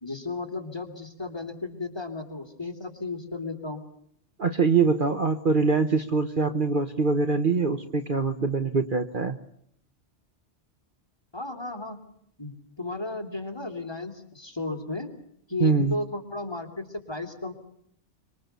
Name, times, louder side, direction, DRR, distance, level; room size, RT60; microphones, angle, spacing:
voice 1, 0.0-3.8 11.3-12.0 12.4-15.1 15.5-17.5, left 2 dB, 20° left, 6 dB, 3.2 m, -34 dB
voice 2, 4.4-9.4 15.6-15.9, right 4 dB, 45° right, 9 dB, 1.2 m, -23 dB
25.5 x 25.0 x 6.8 m, 0.69 s
omnidirectional pair, 1.2 m